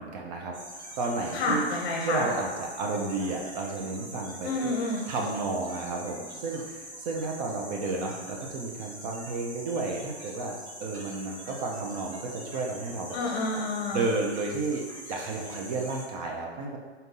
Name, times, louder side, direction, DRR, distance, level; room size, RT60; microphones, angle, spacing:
voice 1, 0.0-1.6 2.0-4.7 5.1-10.5 10.8-13.2 13.9-14.8 15.1-16.8, right 3 dB, 40° right, 0 dB, 0.5 m, -32 dB
sound 1, 0.5-16.1, right 1 dB, 80° right, 1.2 m, -44 dB
voice 2, 1.3-2.3 4.4-5.0 13.1-14.1, left 2 dB, 50° left, -1 dB, 0.7 m, -29 dB
4.0 x 2.6 x 3.7 m, 1.4 s
hypercardioid pair, 120°, 33 cm